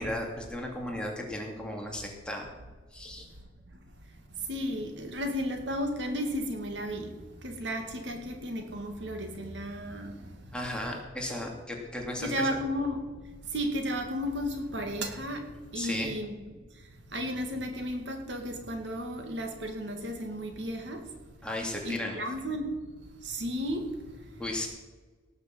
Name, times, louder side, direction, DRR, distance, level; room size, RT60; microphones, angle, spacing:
voice 1, 0.0-2.5 2.9-3.3 10.5-12.6 15.7-16.2 21.4-22.2 24.4-24.7, left 1 dB, 5° left, 0 dB, 2.6 m, -35 dB
voice 2, 4.1-10.6 12.2-13.0 13.4-16.4 16.7-21.0 21.8-22.8 23.2-24.4, equal, 70° right, 4 dB, 2.5 m, -34 dB
18.5 x 6.8 x 7.6 m, 1.4 s
head